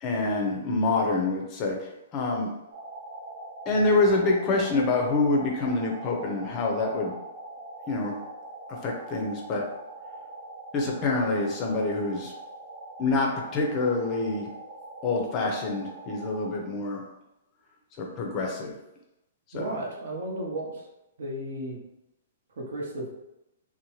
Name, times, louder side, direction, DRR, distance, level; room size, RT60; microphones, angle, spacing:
voice 1, 0.0-2.5 3.7-7.2 7.9-8.1 8.8-9.6 10.7-12.3 13.0-14.5 15.0-17.0 18.0-18.7 19.5-19.8, left 3 dB, 25° left, 0 dB, 0.5 m, -26 dB
sound 1, 2.7-16.6, right 2 dB, 35° right, 0.6 m, -42 dB
voice 2, 19.5-20.9 21.2-21.8 22.6-23.1, right 1 dB, 65° right, -2 dB, 0.8 m, -34 dB
2.7 x 2.1 x 3.0 m, 0.92 s
hypercardioid pair, 165°, 0 cm